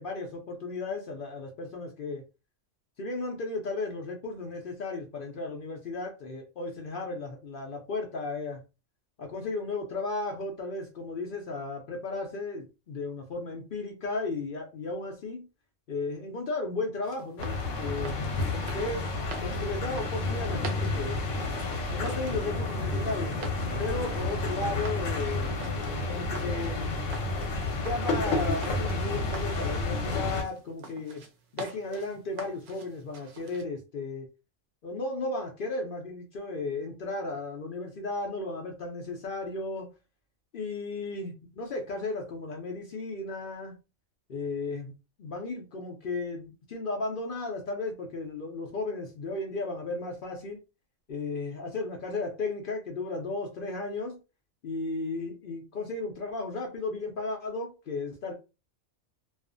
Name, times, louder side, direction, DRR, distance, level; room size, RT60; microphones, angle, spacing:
voice 1, 0.0-2.2 3.0-8.6 9.2-15.5 15.9-18.2 18.5-19.1 19.4-21.2 21.9-25.5 26.1-27.1 27.6-31.2 31.5-34.3 34.8-39.9 40.5-43.8 44.3-44.9 45.2-50.6 51.1-54.2 54.6-58.3, left 3 dB, 60° left, 0.6 m, -35 dB
sound 1, 17.0-33.6, right 4 dB, 65° right, 0.8 m, -46 dB
sound 2, 17.4-30.4, left 3 dB, 80° left, 1.0 m, -30 dB
2.4 x 2.4 x 2.5 m
omnidirectional pair, 1.3 m